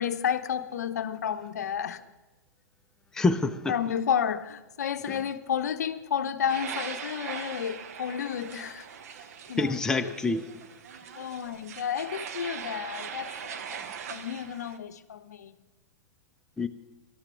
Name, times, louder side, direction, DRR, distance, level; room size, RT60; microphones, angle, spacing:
voice 1, 0.0-2.0 3.7-8.9 9.5-9.8 10.0-10.1 11.1-15.6, left 8 dB, 65° left, 0.7 m, -31 dB
voice 2, 3.1-3.7 5.1-5.2 9.6-10.5 16.6-16.7, left 3 dB, 5° left, 0.5 m, -26 dB
sound 1, 6.5-14.8, right 7 dB, 55° right, 0.9 m, -41 dB
18.5 x 12.0 x 3.3 m
figure-of-eight pair, 105°, 10 cm